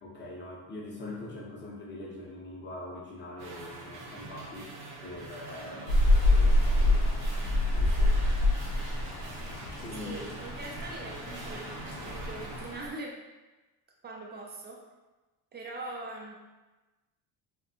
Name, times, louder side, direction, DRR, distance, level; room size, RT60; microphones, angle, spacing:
voice 1, 0.0-4.7 5.0-8.2 9.3-9.4 9.8-10.2, left 2 dB, 25° left, -3 dB, 0.7 m, -43 dB
sound 1, 3.4-12.9, right 3 dB, 75° right, 0.7 m, -45 dB
Rain, 5.9-12.9, left 1 dB, 85° left, 0.6 m, -27 dB
voice 2, 10.0-13.2 14.0-14.8 15.5-16.3, right 2 dB, 25° right, -1 dB, 0.4 m, -42 dB
2.6 x 2.2 x 2.6 m, 1.2 s
supercardioid pair, 95°, 44 cm